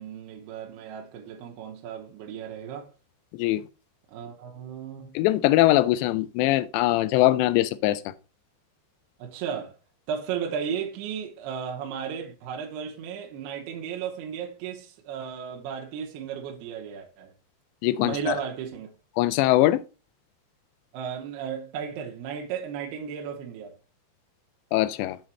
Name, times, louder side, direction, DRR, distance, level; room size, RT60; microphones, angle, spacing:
voice 1, 0.0-2.9 4.1-5.2 9.2-9.7 10.1-17.3 18.0-18.9 20.9-23.8, right 7 dB, 75° right, 2.9 m, -34 dB
voice 2, 5.2-8.1 17.8-18.4 19.2-19.8 24.7-25.2, left 16 dB, 85° left, 2.8 m, -22 dB
7.5 x 3.9 x 4.4 m
omnidirectional pair, 5.0 m